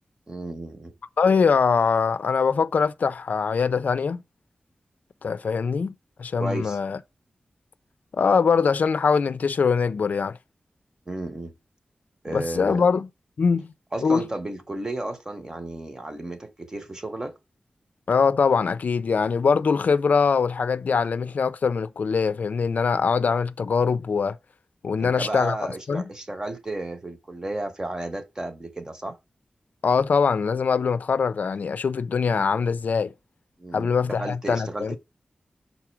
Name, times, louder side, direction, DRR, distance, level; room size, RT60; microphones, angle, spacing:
voice 1, 0.3-0.9 6.4-6.8 11.1-11.5 12.2-12.8 13.9-17.3 25.0-29.2 33.6-35.0, right 2 dB, 25° right, 0.9 m, -33 dB
voice 2, 1.2-4.2 5.2-7.0 8.1-10.4 12.3-13.1 13.4-13.7 14.0-14.2 18.1-24.4 24.8-25.6 25.9-26.1 29.8-33.1 33.7-35.0, left 5 dB, 70° left, 0.4 m, -22 dB
6.0 x 4.1 x 4.5 m
wide cardioid pair, 125°, 3 cm